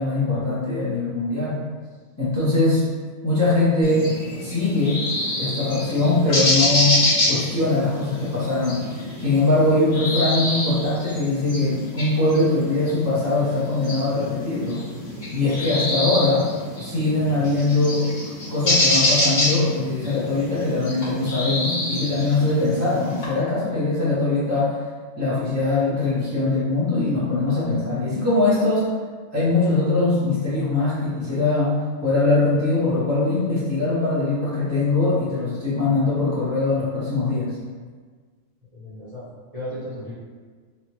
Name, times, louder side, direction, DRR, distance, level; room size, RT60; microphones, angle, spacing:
voice 1, 0.0-1.6 2.2-2.8 3.2-4.1 4.4-5.0 5.4-6.9 7.3-14.8 15.3-16.5 16.8-18.0 18.5-24.8 25.2-28.9 29.3-31.7 32.0-37.5, left 2 dB, 15° left, -11 dB, 0.7 m, -22 dB
sound 1, 3.8-23.3, left 1 dB, 40° left, 0.9 m, -26 dB
voice 2, 17.1-17.6 38.7-39.2 39.5-40.1, equal, 30° right, -12 dB, 0.8 m, -35 dB
2.9 x 2.4 x 2.9 m, 1.5 s
omnidirectional pair, 1.4 m